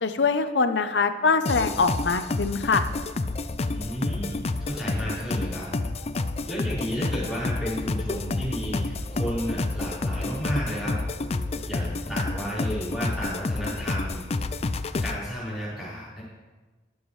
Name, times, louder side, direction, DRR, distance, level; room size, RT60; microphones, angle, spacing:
voice 1, 0.0-2.8, left 4 dB, 75° left, 9 dB, 0.7 m, -23 dB
sound 1, 1.5-15.2, left 3 dB, 35° left, 0.4 m, -29 dB
voice 2, 3.6-5.7 6.5-10.9 11.7-14.2 15.0-16.2, equal, 5° right, -11 dB, 4.4 m, -32 dB
sound 2, 7.1-11.9, equal, 25° right, 4.0 m, -41 dB
21.5 x 7.2 x 3.2 m, 1.3 s
head